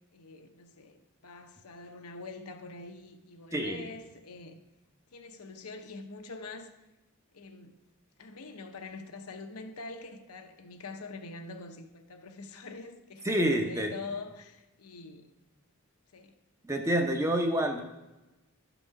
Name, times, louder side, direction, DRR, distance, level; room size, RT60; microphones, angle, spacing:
voice 1, 0.1-4.6 5.1-6.7 7.3-7.8 8.2-15.3 16.1-16.4, left 3 dB, 90° left, 0.8 m, -44 dB
voice 2, 3.5-3.9 13.2-13.9 16.6-17.8, right 1 dB, 15° right, 0.7 m, -28 dB
11.5 x 6.0 x 4.7 m
head